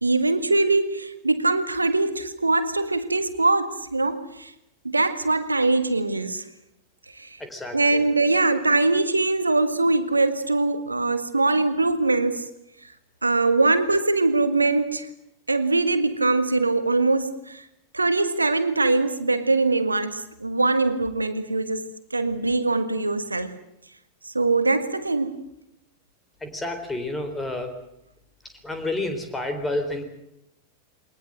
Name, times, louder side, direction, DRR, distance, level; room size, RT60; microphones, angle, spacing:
voice 1, 0.0-4.5 4.8-6.4 7.2-7.3 7.7-12.5 13.2-15.1 15.5-17.6 17.9-21.9 22.1-23.5 24.3-25.4, right 3 dB, 80° right, 1.7 m, -22 dB
voice 2, 7.4-8.1 26.4-27.7 28.6-30.0, left 2 dB, 10° left, 4.1 m, -30 dB
22.5 x 20.0 x 7.9 m
figure-of-eight pair, 90°, 0 cm